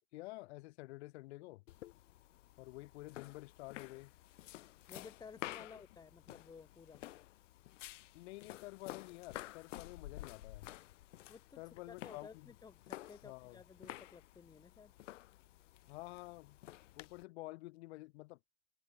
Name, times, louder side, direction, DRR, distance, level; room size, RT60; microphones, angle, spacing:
voice 1, 0.1-1.6 2.6-4.1 5.6-5.8 8.1-10.7 11.6-12.5 13.2-13.6 15.9-16.6 17.0-18.4, left 21 dB, 60° left, 4.1 m, -50 dB
sound 1, 1.7-17.2, left 15 dB, 85° left, 4.3 m, -52 dB
voice 2, 4.9-7.0 11.3-14.9, left 5 dB, 10° left, 2.0 m, -55 dB
supercardioid pair, 155°, 36 cm